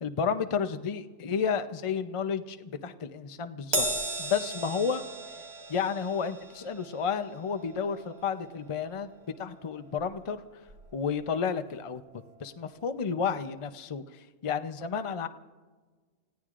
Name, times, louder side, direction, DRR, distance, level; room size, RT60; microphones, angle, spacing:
voice 1, 0.0-3.9 4.2-5.0 5.7-9.1 9.4-10.4 10.9-12.0 12.4-15.3, left 6 dB, 35° left, 10 dB, 0.6 m, -31 dB
Crash cymbal, 3.7-10.4 10.7-10.9 12.0-12.1, right 1 dB, 80° right, 1.7 m, -37 dB
30.0 x 17.0 x 2.5 m, 1.4 s
omnidirectional pair, 1.1 m